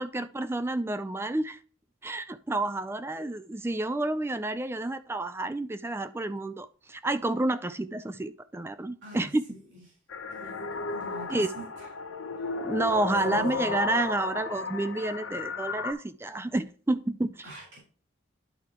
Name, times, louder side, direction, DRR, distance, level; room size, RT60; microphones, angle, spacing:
voice 1, 0.0-1.6 2.0-9.4 11.3-11.5 12.6-17.4, right 2 dB, 10° right, 12 dB, 0.3 m, -30 dB
voice 2, 9.0-9.8 10.3-11.9 13.2-13.5 17.4-17.8, equal, 60° right, -4 dB, 4.1 m, -45 dB
sound 1, 10.1-15.9, left 4 dB, 80° left, 0.8 m, -34 dB
11.5 x 4.7 x 2.9 m, 0.42 s
head